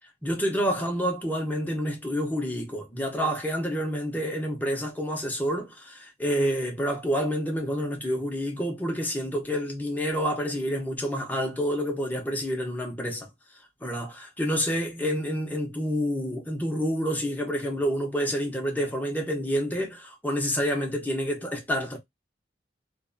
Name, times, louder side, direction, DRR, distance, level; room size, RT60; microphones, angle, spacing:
voice 1, 0.2-13.3 13.8-22.0, equal, 10° left, 0.9 m, -28 dB
2.6 x 2.3 x 2.5 m
head